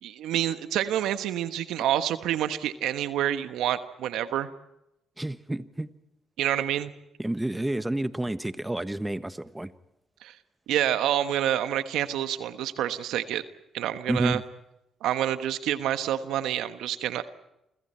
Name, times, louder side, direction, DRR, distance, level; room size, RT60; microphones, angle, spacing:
voice 1, 0.0-4.5 6.4-6.9 10.2-10.3 10.7-13.4 13.7-14.4 15.0-17.2, right 11 dB, 75° right, 10 dB, 1.3 m, -28 dB
voice 2, 5.2-5.9 7.2-9.7 14.1-14.4, right 1 dB, 10° right, 12 dB, 1.3 m, -29 dB
29.0 x 26.5 x 4.5 m, 0.87 s
hypercardioid pair, 50°, 0 cm